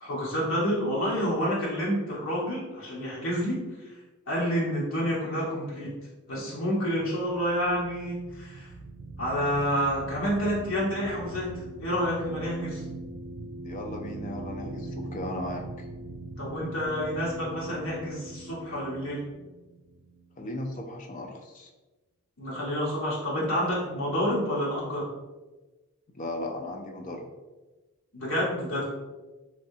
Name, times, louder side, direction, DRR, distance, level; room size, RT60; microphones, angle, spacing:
voice 1, 0.0-3.6 4.3-5.9 6.3-8.7 9.2-11.5 11.8-12.8 16.4-19.2 22.4-25.1 28.1-28.8, equal, 65° left, -5 dB, 1.1 m, -29 dB
sound 1, 7.2-20.8, right 2 dB, 60° right, 0.3 m, -41 dB
voice 2, 13.6-15.9 20.4-21.7 26.2-27.2, left 1 dB, 35° left, 2 dB, 0.4 m, -36 dB
3.1 x 2.8 x 2.7 m, 1.2 s
head